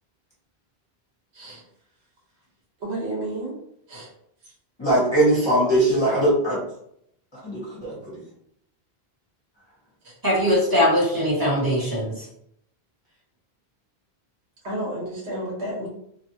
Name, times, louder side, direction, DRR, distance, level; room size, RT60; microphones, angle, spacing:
voice 1, 2.8-3.5 3.9-4.1 10.0-10.1 14.6-15.9, right 1 dB, 85° right, -4 dB, 1.3 m, -31 dB
voice 2, 4.8-6.6 7.4-8.2, right 1 dB, 25° left, -7 dB, 0.9 m, -20 dB
voice 3, 10.2-12.3, equal, 20° right, -7 dB, 1.4 m, -21 dB
2.7 x 2.4 x 2.7 m, 0.72 s
omnidirectional pair, 1.1 m